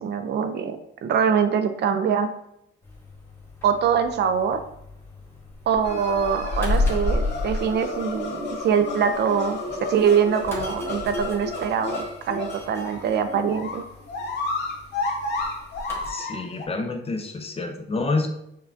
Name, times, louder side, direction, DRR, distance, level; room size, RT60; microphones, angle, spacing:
voice 1, 0.0-2.3 3.6-4.6 5.7-13.8, right 7 dB, 60° right, 9 dB, 0.4 m, -23 dB
sound 1, 2.8-16.1, left 2 dB, 10° left, 1.1 m, -33 dB
sound 2, 5.8-16.6, left 2 dB, 60° left, 0.8 m, -32 dB
voice 2, 16.1-18.3, left 3 dB, 30° left, 5 dB, 0.5 m, -28 dB
5.4 x 2.3 x 2.5 m, 0.77 s
cardioid pair, 90°, 20 cm